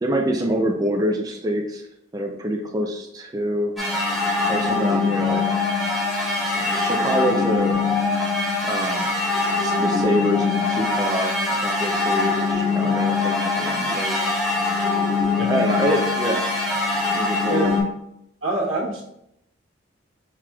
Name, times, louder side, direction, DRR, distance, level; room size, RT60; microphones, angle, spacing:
voice 1, 0.0-1.8 2.1-3.7 4.5-5.7 6.5-7.9 8.6-9.1 9.6-14.2 15.5-16.4 17.1-17.8, right 1 dB, 20° right, 1 dB, 0.3 m, -26 dB
sound 1, 3.8-17.8, left 3 dB, ahead, 0.7 m, -23 dB
voice 2, 18.4-19.0, right 1 dB, 80° right, -3 dB, 1.1 m, -25 dB
5.8 x 2.9 x 2.3 m, 0.79 s
head